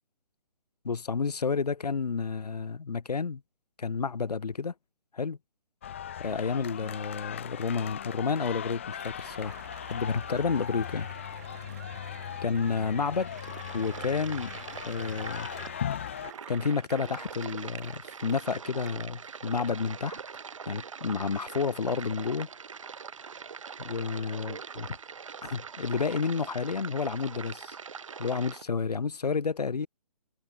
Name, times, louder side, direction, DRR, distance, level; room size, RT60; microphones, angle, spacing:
voice 1, 0.8-3.4 3.8-4.7 5.1-5.4 6.2-9.6 9.8-11.1 12.4-13.3 13.7-15.5 16.5-20.2 20.7-22.5 23.8-24.9 25.4-27.8 28.2-29.9, left 5 dB, 85° left, 0.4 m, -30 dB
sound 1, 5.8-16.3, left 9 dB, 20° left, 0.4 m, -39 dB
Cheering / Applause, 8.9-18.9, right 12 dB, 25° right, 0.8 m, -50 dB
sound 2, 13.0-28.6, right 6 dB, 55° right, 1.5 m, -42 dB
figure-of-eight pair, 135°, 20 cm